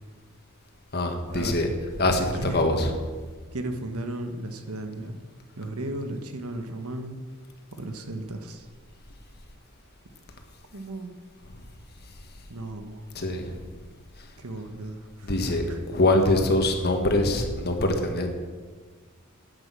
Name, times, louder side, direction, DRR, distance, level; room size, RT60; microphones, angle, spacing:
voice 1, 0.9-1.7 2.0-3.0 11.5-11.6 13.1-13.7 14.2-14.3 15.2-18.3, left 1 dB, 45° left, 4 dB, 1.6 m, -24 dB
voice 2, 2.1-2.6 3.5-5.2 5.5-7.2 7.7-8.7 10.7-11.1 12.5-13.1 14.4-15.3 15.7-15.8, right 2 dB, 80° right, 6 dB, 1.3 m, -35 dB
9.8 x 8.9 x 7.6 m, 1.5 s
head